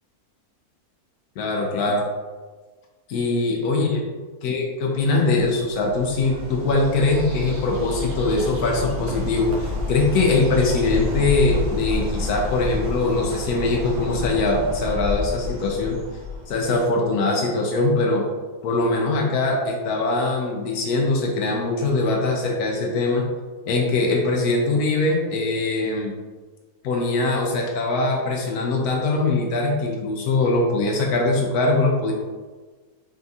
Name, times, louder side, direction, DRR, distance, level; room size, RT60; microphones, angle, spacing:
voice 1, 1.4-2.0 3.1-4.0 4.4-16.0 16.5-18.2 18.6-23.3 23.7-26.1 26.8-32.1, left 3 dB, 85° left, 0 dB, 1.2 m, -22 dB
Bird, 5.4-16.8, left 2 dB, 75° right, 1.4 m, -30 dB
4.3 x 3.5 x 2.7 m, 1.3 s
omnidirectional pair, 1.6 m